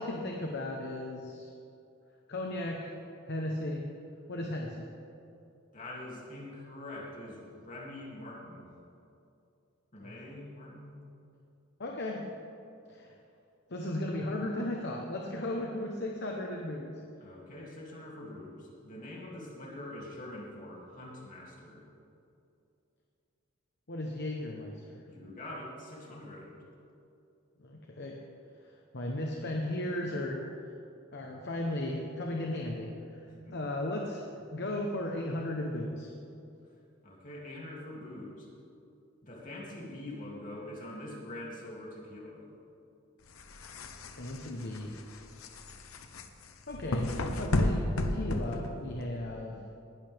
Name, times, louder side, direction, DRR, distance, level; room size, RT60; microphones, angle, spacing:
voice 1, 0.0-1.5 2.3-2.9 3.3-3.9 4.3-4.9 10.0-10.1 11.8-12.3 12.9-13.2 13.7-17.0 23.9-25.0 27.6-28.2 28.6-30.4 31.1-34.2 34.5-36.1 44.2-45.0 46.7-47.9 48.1-49.6, left 1 dB, 55° left, 0 dB, 1.1 m, -35 dB
voice 2, 5.7-8.7 9.9-11.0 17.2-21.9 25.1-26.6 33.2-33.6 37.0-38.5 39.2-42.5, left 1 dB, 40° left, -4 dB, 2.8 m, -44 dB
sound 1, 43.3-49.2, left 1 dB, 90° left, 1.0 m, -33 dB
19.0 x 11.5 x 3.6 m, 2.7 s
head